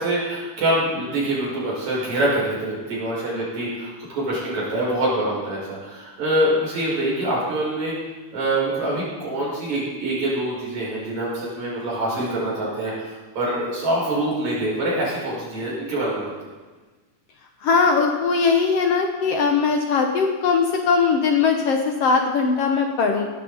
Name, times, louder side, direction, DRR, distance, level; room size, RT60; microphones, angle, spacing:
voice 1, 0.0-7.9 8.3-16.3, right 1 dB, 65° right, -5 dB, 6.3 m, -25 dB
voice 2, 17.6-23.3, left 5 dB, 65° left, 3 dB, 1.7 m, -20 dB
17.5 x 12.0 x 4.0 m, 1.3 s
omnidirectional pair, 3.5 m